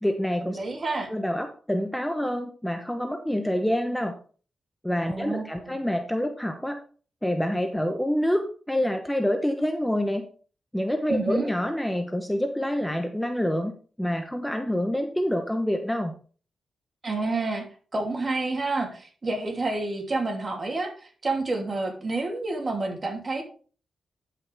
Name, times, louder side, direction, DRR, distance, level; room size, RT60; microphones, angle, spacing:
voice 1, 0.0-0.6 1.1-4.1 4.8-6.8 7.2-10.3 10.7-13.7 14.0-16.1, equal, 5° left, 5 dB, 1.0 m, -27 dB
voice 2, 0.5-1.1 5.1-5.8 11.1-11.5 17.0-17.7 17.9-20.9 21.2-23.4, right 3 dB, 40° right, 2 dB, 3.0 m, -29 dB
12.0 x 5.9 x 3.5 m, 0.40 s
cardioid pair, 75°, 0 cm